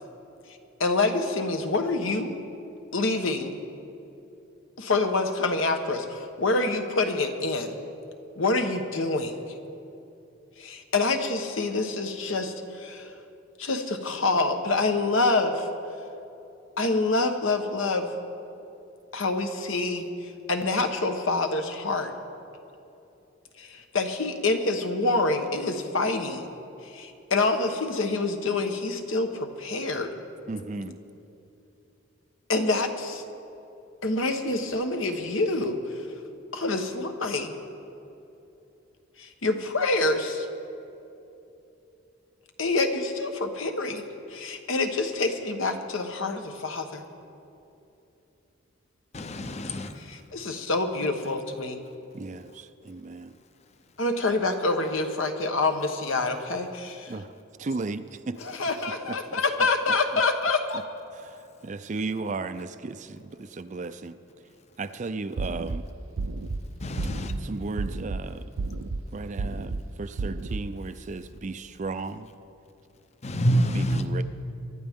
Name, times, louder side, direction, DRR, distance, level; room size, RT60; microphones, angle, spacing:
voice 1, 0.8-2.3 2.9-3.5 4.8-7.7 8.4-9.4 10.6-13.1 13.6-15.6 16.8-18.1 19.1-22.1 23.6-26.5 26.9-30.1 32.5-33.2 34.0-35.8 36.5-37.5 39.2-40.5 42.6-44.0 44.3-47.0 50.1-51.8 54.0-57.1 58.4-60.8, left 3 dB, 75° left, 6 dB, 1.1 m, -26 dB
voice 2, 30.5-31.0 51.0-51.1 52.1-53.3 57.1-57.3 57.6-58.4 59.1-59.4 59.9-60.0 61.1-64.2 64.8-65.8 67.4-68.5 69.1-72.3 73.7-74.2, right 3 dB, 35° right, 11 dB, 0.4 m, -35 dB
voice 3, 49.1-50.0 66.8-67.3 73.2-74.0, equal, 30° left, 8 dB, 0.7 m, -26 dB
sound 1, 65.4-65.8 66.2-66.6 67.0-67.4 67.8-68.2 68.6-69.0 69.4-69.8 70.2-70.6, right 3 dB, 80° right, 0.6 m, -31 dB
24.5 x 11.5 x 3.6 m, 2.8 s
head